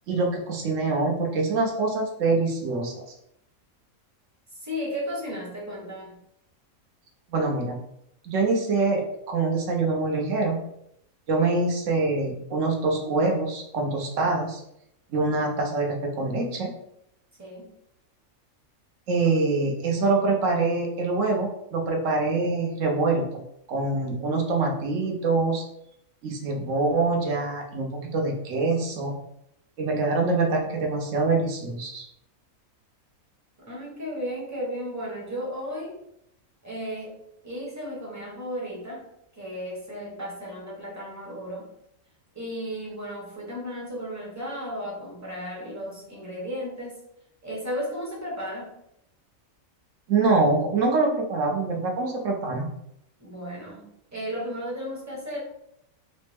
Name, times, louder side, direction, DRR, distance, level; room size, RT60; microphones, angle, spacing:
voice 1, 0.1-2.9 7.3-7.8 8.2-10.6 11.3-14.6 15.1-16.7 19.1-23.4 23.7-25.6 26.2-29.2 29.8-32.0 50.1-52.8, right 3 dB, 65° right, 1 dB, 1.1 m, -25 dB
voice 2, 4.6-6.2 17.4-17.7 33.7-36.0 36.6-37.2 37.4-39.1 39.3-41.7 42.3-47.0 47.4-48.7 53.2-55.4, equal, 15° right, -3 dB, 0.8 m, -34 dB
4.1 x 2.1 x 3.3 m, 0.76 s
omnidirectional pair, 1.5 m